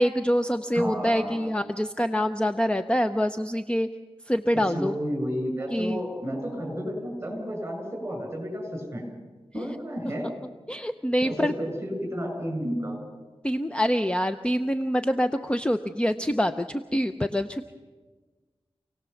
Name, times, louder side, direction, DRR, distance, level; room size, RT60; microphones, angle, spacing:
voice 1, 0.0-3.9 4.3-5.0 5.7-6.0 9.5-9.6 10.7-11.5 13.4-17.7, equal, 10° left, 9 dB, 0.7 m, -25 dB
voice 2, 0.7-1.5 4.5-9.1 9.5-10.3 11.2-13.0, equal, 25° right, 2 dB, 7.4 m, -32 dB
27.5 x 18.0 x 7.1 m, 1.3 s
wide cardioid pair, 100°, 10 cm